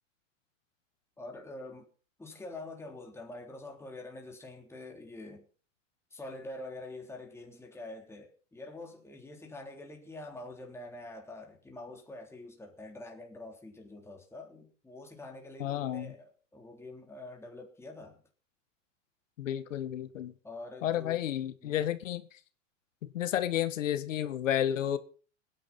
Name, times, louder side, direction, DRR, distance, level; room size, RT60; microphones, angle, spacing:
voice 1, 1.2-1.9 2.2-5.5 6.1-18.2 20.4-21.2 21.6-21.8, left 2 dB, 5° left, 3.6 m, -46 dB
voice 2, 15.6-16.1 19.4-20.3 20.8-22.3 23.0-25.0, left 11 dB, 75° left, 1.7 m, -31 dB
21.0 x 10.5 x 4.3 m
hypercardioid pair, 115°, 38 cm